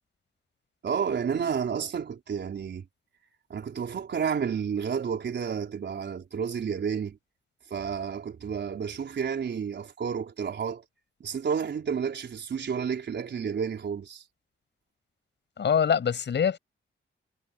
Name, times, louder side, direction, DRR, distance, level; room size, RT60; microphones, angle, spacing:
voice 1, 0.8-2.9 3.5-7.2 7.7-10.8 11.2-14.2, right 7 dB, 60° right, 4.5 m, -31 dB
voice 2, 15.6-16.6, left 7 dB, 60° left, 6.3 m, -24 dB
wide cardioid pair, 120°, 20 cm